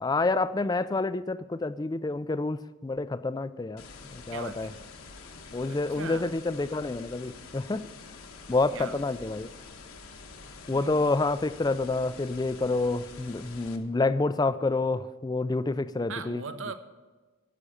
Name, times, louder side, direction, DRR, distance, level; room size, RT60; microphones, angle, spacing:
voice 1, 0.0-3.8 4.1-4.7 5.5-7.8 8.5-9.5 10.7-16.4, left 3 dB, 20° left, 15 dB, 0.3 m, -28 dB
sound 1, 3.8-13.8, left 4 dB, 70° left, 1.2 m, -47 dB
voice 2, 4.3-4.9 5.7-6.3 8.7-9.0 10.7-11.1 16.1-16.7, right 4 dB, 60° right, 10 dB, 0.8 m, -40 dB
10.0 x 7.6 x 8.4 m, 1.3 s
head